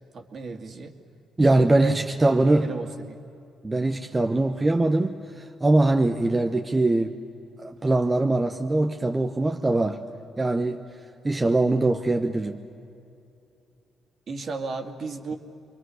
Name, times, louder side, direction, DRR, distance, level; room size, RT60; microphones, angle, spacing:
voice 1, 0.1-0.9 1.6-2.0 2.4-3.2 14.3-15.4, right 4 dB, 50° right, 4 dB, 2.3 m, -34 dB
voice 2, 1.4-2.7 3.6-7.1 7.6-10.0 10.4-10.8 11.2-12.6, right 2 dB, 20° right, 4 dB, 1.0 m, -22 dB
28.0 x 22.5 x 6.5 m, 2.7 s
cardioid pair, 90°, 0 cm